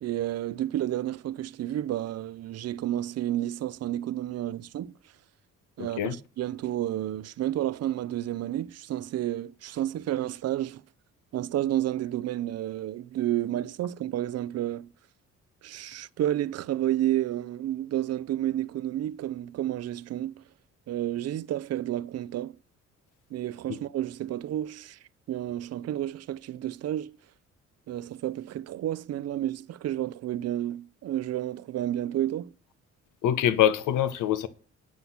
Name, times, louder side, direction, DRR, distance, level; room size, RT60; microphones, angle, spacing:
voice 1, 0.0-4.9 5.8-10.8 11.3-14.9 15.6-20.4 20.9-22.6 23.3-25.0 25.3-27.2 27.9-32.5, right 13 dB, 55° right, 0.5 m, -31 dB
voice 2, 5.8-6.1 23.7-23.8 33.2-34.5, left 11 dB, 85° left, 0.8 m, -24 dB
9.6 x 5.7 x 5.8 m
cardioid pair, 90°, 30 cm